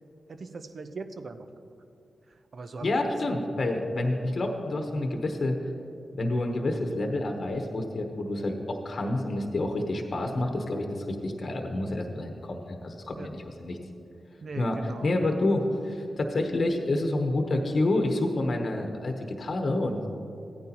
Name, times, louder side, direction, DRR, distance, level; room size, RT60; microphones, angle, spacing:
voice 1, 0.3-1.5 2.5-2.9 13.2-13.3 14.4-15.1, right 3 dB, 60° right, 8 dB, 0.6 m, -39 dB
voice 2, 2.8-5.6 6.1-13.8 14.6-20.1, left 2 dB, 60° left, 3 dB, 0.9 m, -28 dB
14.5 x 9.4 x 2.9 m, 2.7 s
supercardioid pair, 40°, 0 cm